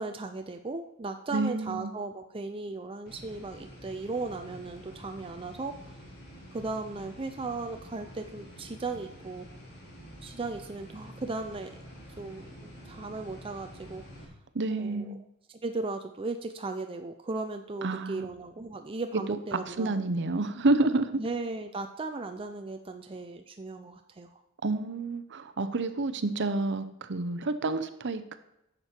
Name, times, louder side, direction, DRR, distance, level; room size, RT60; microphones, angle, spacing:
voice 1, 0.0-5.7 6.5-9.5 10.2-11.8 12.2-14.0 14.7-15.1 15.5-20.0 21.2-24.4, right 3 dB, 25° right, 5 dB, 0.5 m, -36 dB
voice 2, 1.3-1.9 14.5-15.2 17.8-18.3 19.5-21.1 24.6-28.4, right 2 dB, 55° right, 11 dB, 0.8 m, -29 dB
sound 1, 3.1-14.2, equal, 50° left, 3.4 m, -48 dB
11.0 x 7.6 x 4.5 m, 0.85 s
head